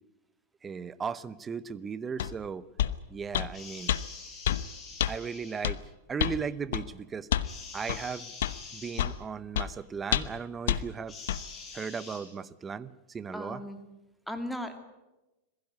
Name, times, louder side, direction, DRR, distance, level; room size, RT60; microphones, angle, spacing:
voice 1, 0.6-2.6 3.1-3.9 5.1-5.8 6.1-7.3 7.7-8.3 8.7-11.2 11.7-13.6, right 6 dB, 20° right, 17 dB, 0.8 m, -36 dB
sound 1, 2.2-2.3 2.8-3.0 3.3-3.5 3.9-4.0 4.5-4.6 5.0-5.1 5.6-5.8 6.2-6.4 6.7-6.9 7.3-7.5 7.9-8.0 8.4-8.6 9.0-9.2 9.6-9.7 10.1-10.4 10.7-10.8 11.3-11.4, left 11 dB, 75° left, 0.9 m, -28 dB
sound 2, 3.5-5.7 7.4-9.1 11.1-12.2, left 4 dB, 20° left, 6.5 m, -45 dB
voice 2, 13.3-13.8 14.3-14.8, equal, ahead, 6 dB, 2.3 m, -36 dB
21.5 x 16.0 x 9.6 m, 1.0 s
hypercardioid pair, 125°, 0 cm